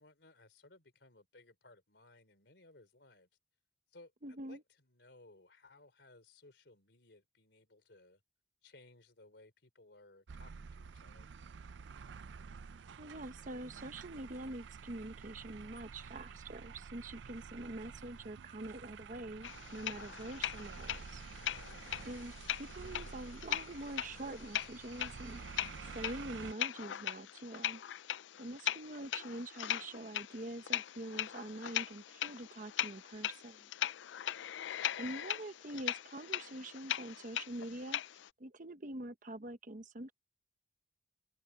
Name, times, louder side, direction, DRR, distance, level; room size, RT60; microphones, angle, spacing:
voice 1, 0.0-3.3 3.9-8.2 8.6-11.3 21.4-22.0 34.8-35.1, left 2 dB, 70° left, 3.7 m, -61 dB
voice 2, 4.2-4.6 13.0-21.2 22.0-25.6 25.9-27.8 28.4-33.7 35.0-38.0 38.4-40.1, right 1 dB, 45° right, 1.0 m, -45 dB
sound 1, 10.3-26.5, right 5 dB, 85° right, 0.5 m, -50 dB
sound 2, 19.4-38.3, left 11 dB, 90° left, 0.4 m, -40 dB
head